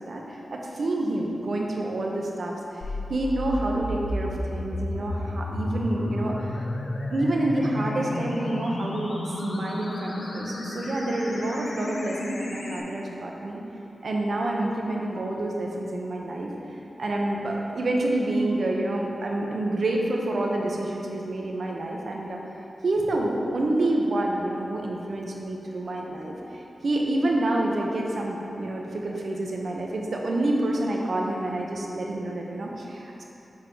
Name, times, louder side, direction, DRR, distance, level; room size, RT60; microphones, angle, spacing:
voice 1, 0.0-2.8 3.1-6.7 7.1-13.6 14.0-16.5 17.0-22.4 22.8-33.2, right 1 dB, 70° right, -1 dB, 0.8 m, -28 dB
sound 1, 2.8-12.8, left 1 dB, 70° left, 0.6 m, -32 dB
7.1 x 4.3 x 3.8 m, 3.0 s
cardioid pair, 45°, 0 cm